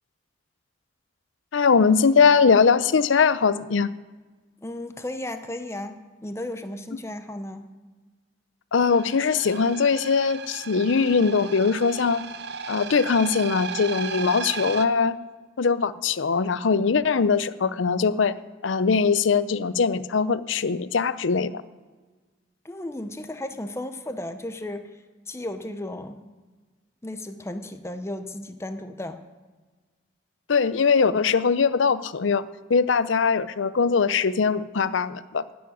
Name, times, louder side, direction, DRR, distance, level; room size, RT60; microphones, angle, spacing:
voice 1, 1.5-3.9 8.7-12.2 12.7-15.2 15.6-18.3 18.6-21.6 30.5-35.4, left 5 dB, 80° left, 15 dB, 0.6 m, -21 dB
voice 2, 4.6-6.0 6.2-7.7 22.6-26.2 27.0-29.2, left 1 dB, 15° left, 8 dB, 0.6 m, -34 dB
sound 1, 8.8-14.9, right 5 dB, 60° right, 0.6 m, -35 dB
12.0 x 7.2 x 9.4 m, 1.3 s
head